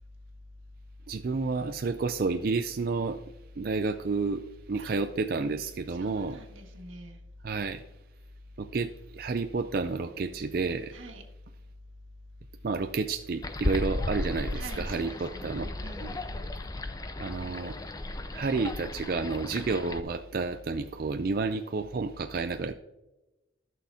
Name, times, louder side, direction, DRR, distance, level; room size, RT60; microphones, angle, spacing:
voice 1, 1.1-3.2 3.6-6.4 7.4-7.8 8.6-10.9 12.6-15.7 16.0-16.1 17.2-17.7 18.3-22.7, right 4 dB, 50° right, 7 dB, 0.4 m, -30 dB
voice 2, 5.9-7.2 10.9-11.2 14.5-16.6, right 1 dB, 90° right, 2 dB, 1.7 m, -46 dB
sound 1, 13.4-20.0, left 2 dB, 20° left, 0.5 m, -35 dB
15.0 x 6.3 x 2.8 m, 1.0 s
head